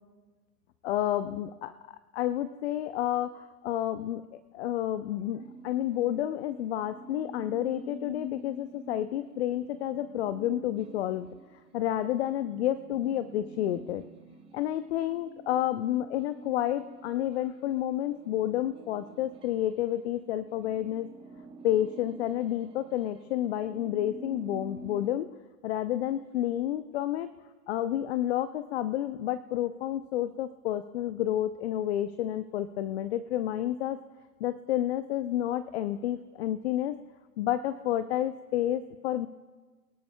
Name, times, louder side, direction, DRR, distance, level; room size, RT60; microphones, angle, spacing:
voice 1, 0.8-1.7 2.1-11.3 11.7-14.0 14.5-21.1 21.6-25.3 25.6-27.3 27.7-34.0 34.4-37.0 37.4-39.3, left 12 dB, 45° left, 12 dB, 0.5 m, -30 dB
sound 1, 5.4-20.0 20.3-25.1, right 2 dB, 10° right, 0.7 m, -48 dB
22.5 x 13.0 x 2.2 m, 1.3 s
hypercardioid pair, 120°, 48 cm